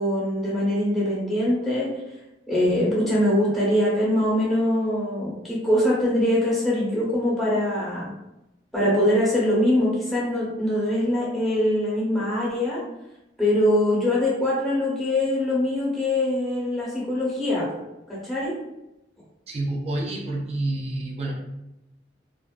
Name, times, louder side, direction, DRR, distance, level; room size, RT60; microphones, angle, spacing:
voice 1, 0.0-1.9 2.5-8.1 8.7-12.8 13.4-17.8 18.1-18.5, left 1 dB, ahead, -7 dB, 0.8 m, -23 dB
voice 2, 19.5-21.3, right 2 dB, 35° right, -2 dB, 0.4 m, -28 dB
2.4 x 2.2 x 2.2 m, 0.92 s
head